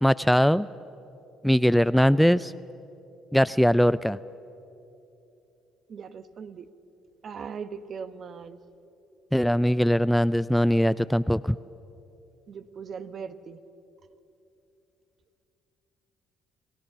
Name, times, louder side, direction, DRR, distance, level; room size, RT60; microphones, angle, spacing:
voice 1, 0.0-0.7 1.4-2.5 3.3-4.2 9.3-11.6, equal, ahead, 16 dB, 0.4 m, -21 dB
voice 2, 5.9-6.6 7.2-8.6 12.5-13.6, right 6 dB, 50° right, 11 dB, 1.1 m, -39 dB
28.5 x 17.0 x 6.8 m, 2.8 s
supercardioid pair, 65°, 0 cm